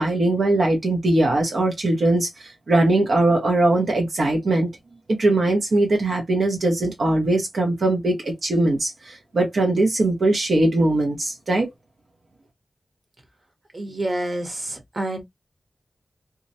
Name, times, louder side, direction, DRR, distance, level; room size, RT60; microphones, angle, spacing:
voice 1, 0.0-4.7 5.1-11.7, right 2 dB, 80° right, 0.7 m, -20 dB
voice 2, 13.7-15.2, right 1 dB, 45° right, 1.0 m, -28 dB
2.3 x 2.0 x 2.6 m
wide cardioid pair, 75°, 0 cm